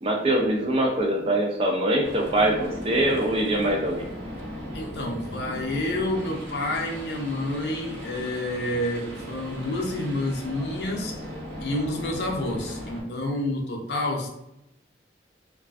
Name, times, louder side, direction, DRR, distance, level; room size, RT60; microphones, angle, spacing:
voice 1, 0.0-4.1, right 1 dB, 30° right, 0 dB, 0.4 m, -23 dB
sound 1, 2.0-13.0, equal, 80° right, 0.8 m, -37 dB
voice 2, 4.7-11.1 11.6-14.3, left 1 dB, 65° left, 1 dB, 0.5 m, -29 dB
2.4 x 2.3 x 2.3 m, 0.85 s
head